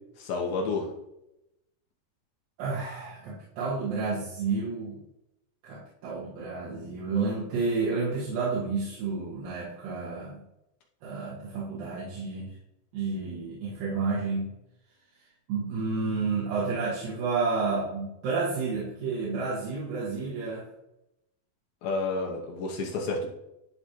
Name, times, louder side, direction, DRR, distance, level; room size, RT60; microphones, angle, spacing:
voice 1, 0.2-0.9 21.8-23.3, left 3 dB, 75° left, 1 dB, 2.7 m, -30 dB
voice 2, 2.6-5.0 5.6-10.4 11.0-12.6 12.9-14.5 15.5-20.7, right 4 dB, 70° right, -8 dB, 3.1 m, -30 dB
12.0 x 4.3 x 3.0 m, 0.86 s
omnidirectional pair, 4.3 m